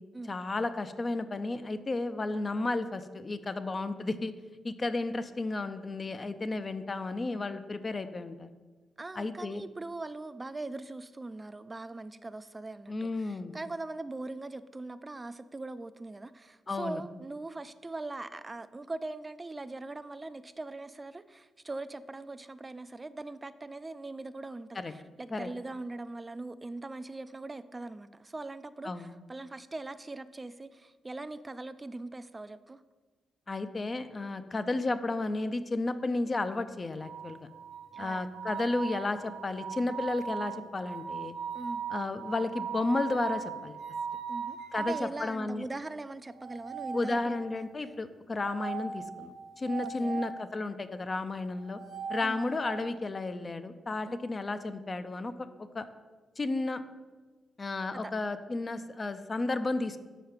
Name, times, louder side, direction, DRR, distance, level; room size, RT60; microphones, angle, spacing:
voice 1, 0.3-4.3 4.6-8.5 9.2-9.6 12.9-13.5 16.7-17.0 24.8-24.9 25.3-25.5 28.8-29.1 33.5-37.5 38.0-41.3 41.9-43.8 44.7-44.9 45.2-45.6 46.9-51.8 52.1-55.5 55.7-55.9 56.4-56.8 57.6-60.0, left 2 dB, 40° left, 10 dB, 0.5 m, -33 dB
voice 2, 9.0-32.8 37.9-38.3 41.5-41.8 44.3-47.9 49.8-50.3 52.2-52.7 54.1-54.3 57.9-58.1, right 2 dB, 30° right, 13 dB, 0.4 m, -41 dB
sound 1, 37.0-45.1 46.4-47.6 48.4-50.4 51.6-52.9, right 6 dB, 60° right, 0.7 m, -39 dB
5.0 x 4.7 x 5.8 m, 1.3 s
supercardioid pair, 45°, 0 cm